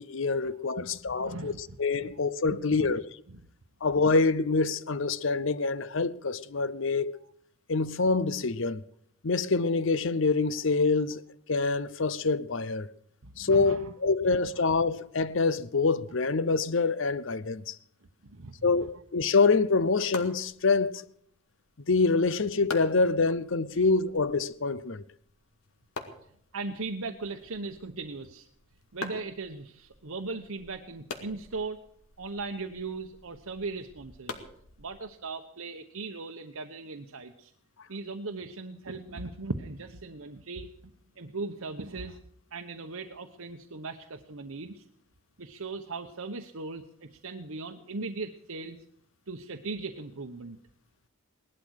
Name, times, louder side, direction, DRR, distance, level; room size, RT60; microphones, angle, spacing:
voice 1, 0.0-1.5 1.8-3.0 3.8-7.2 7.7-8.8 9.2-11.2 11.5-12.9 13.4-17.7 18.6-21.0 21.9-25.0, left 4 dB, 65° left, 0.7 m, -26 dB
voice 2, 0.8-2.1 2.8-2.9 3.3-3.4 13.2-13.9 18.2-18.7 23.8-23.9 24.1-24.2 26.5-28.5 28.9-31.8 32.2-34.4 34.8-37.5 37.9-40.7 41.2-42.2 42.5-44.8 45.4-48.8 49.3-50.6, right 3 dB, 80° right, 1.0 m, -38 dB
sound 1, 19.7-35.3, left 3 dB, 85° left, 2.2 m, -46 dB
18.5 x 12.0 x 6.4 m
head